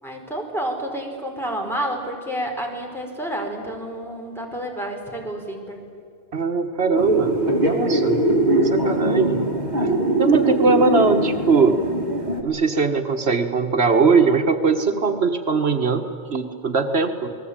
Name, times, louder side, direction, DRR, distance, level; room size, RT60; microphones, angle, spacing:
voice 1, 0.0-5.8, right 1 dB, ahead, 0 dB, 4.7 m, -29 dB
voice 2, 6.3-7.3 7.6-8.2 8.6-9.4 9.8-9.9 10.2-11.8 12.4-16.0 16.3-17.3, right 4 dB, 70° right, 5 dB, 1.6 m, -20 dB
sound 1, 7.0-12.4, right 1 dB, 40° right, 3.0 m, -21 dB
29.0 x 20.0 x 8.9 m, 2.4 s
omnidirectional pair, 1.1 m